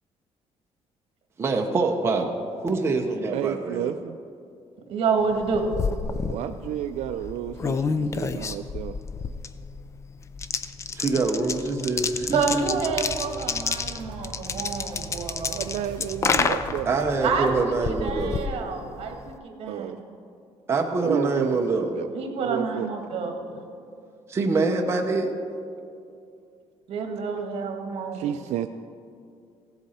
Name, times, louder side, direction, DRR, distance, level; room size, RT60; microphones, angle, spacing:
voice 1, 1.4-2.3 2.6-3.9 10.9-12.7 16.9-18.4 20.7-21.9 24.3-25.3, right 3 dB, 20° right, 2 dB, 0.8 m, -25 dB
voice 2, 3.3-4.2 6.2-9.0 15.5-17.0 19.7-20.0 21.0-22.1 22.4-23.2 28.1-28.7, right 11 dB, 80° right, 8 dB, 0.4 m, -31 dB
voice 3, 4.9-5.7 12.3-15.6 17.2-17.7 18.0-19.9 22.1-23.6 26.9-28.3, right 5 dB, 60° right, 4 dB, 1.4 m, -28 dB
sound 1, 5.3-19.4, left 5 dB, 25° left, 0.4 m, -30 dB
sound 2, 12.2-17.7, right 4 dB, 45° right, 1.9 m, -42 dB
16.0 x 7.9 x 4.2 m, 2.5 s
cardioid pair, 170°, 11 cm